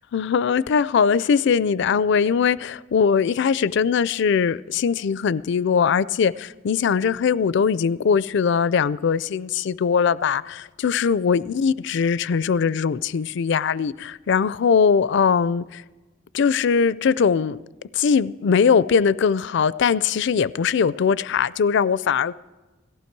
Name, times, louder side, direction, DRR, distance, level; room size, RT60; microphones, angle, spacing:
voice 1, 0.1-15.8 16.3-17.6 17.9-22.3, left 6 dB, 65° left, 0.4 m, -21 dB
17.5 x 15.0 x 4.6 m
head